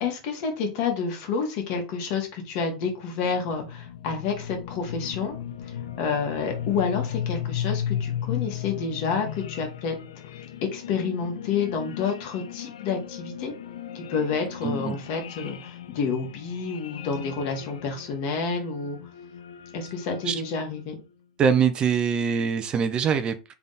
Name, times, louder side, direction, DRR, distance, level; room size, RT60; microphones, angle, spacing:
voice 1, 0.0-5.4 5.6-10.0 10.7-13.5 13.9-19.0 19.7-20.9, left 5 dB, 55° left, 1.8 m, -29 dB
sound 1, 2.7-21.0, left 9 dB, 90° left, 0.5 m, -36 dB
voice 2, 14.6-15.0 20.3-20.4 21.4-23.3, right 7 dB, 30° right, 0.6 m, -23 dB
3.5 x 3.5 x 4.1 m
supercardioid pair, 120°, 3 cm